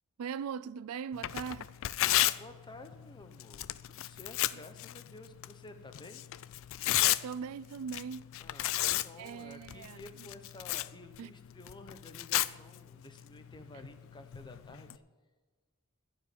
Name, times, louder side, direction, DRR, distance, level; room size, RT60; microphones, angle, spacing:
voice 1, 0.2-1.7 7.2-8.3 9.2-10.0 11.2-11.3, right 6 dB, 75° right, 0.4 m, -40 dB
Tearing, 1.1-15.0, left 14 dB, 60° left, 0.4 m, -35 dB
voice 2, 2.4-6.2 8.4-14.9, left 2 dB, 20° left, 1.0 m, -52 dB
15.5 x 5.2 x 9.7 m
head